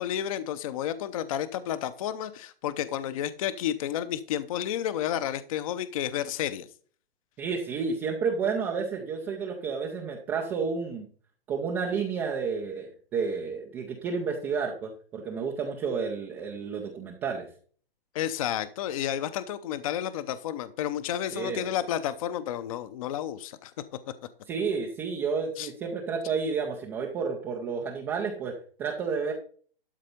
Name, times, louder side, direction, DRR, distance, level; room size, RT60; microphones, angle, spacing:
voice 1, 0.0-6.7 18.1-23.7 25.6-25.7, left 10 dB, 35° left, 14 dB, 0.7 m, -31 dB
voice 2, 7.4-11.1 11.5-17.5 21.3-21.7 24.5-29.3, right 5 dB, 5° right, 1 dB, 0.3 m, -31 dB
12.5 x 4.3 x 5.1 m, 0.44 s
hypercardioid pair, 150°, 29 cm